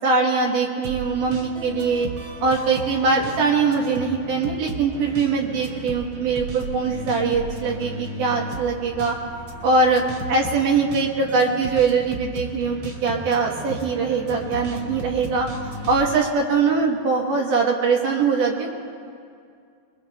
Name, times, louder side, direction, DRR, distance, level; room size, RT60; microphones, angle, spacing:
voice 1, 0.0-2.1 2.4-9.2 9.6-10.0 10.3-15.5 15.9-18.7, right 4 dB, 65° right, -1 dB, 2.5 m, -22 dB
sound 1, 0.8-16.2, right 1 dB, 45° right, 2.8 m, -35 dB
23.0 x 22.5 x 2.2 m, 2.3 s
omnidirectional pair, 4.3 m